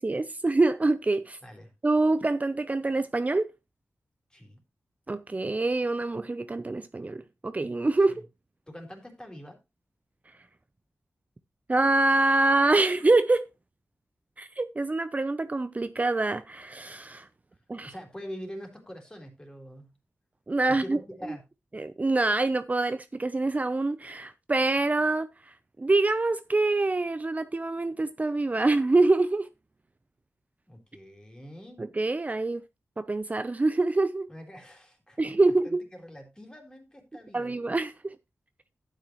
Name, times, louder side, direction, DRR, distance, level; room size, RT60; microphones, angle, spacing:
voice 1, 0.0-1.4 1.8-3.5 5.1-8.1 11.7-13.4 14.4-17.3 17.7-17.9 20.5-21.0 21.7-29.5 31.8-32.6 33.0-34.3 35.2-35.8 37.3-38.1, right 2 dB, 30° right, 0.6 m, -25 dB
voice 2, 4.3-4.6 8.1-8.2 8.7-9.6 17.8-19.9 20.7-21.4 30.7-31.9 34.3-37.6, equal, 15° left, 3.9 m, -44 dB
11.5 x 9.2 x 3.1 m
wide cardioid pair, 70°, 5 cm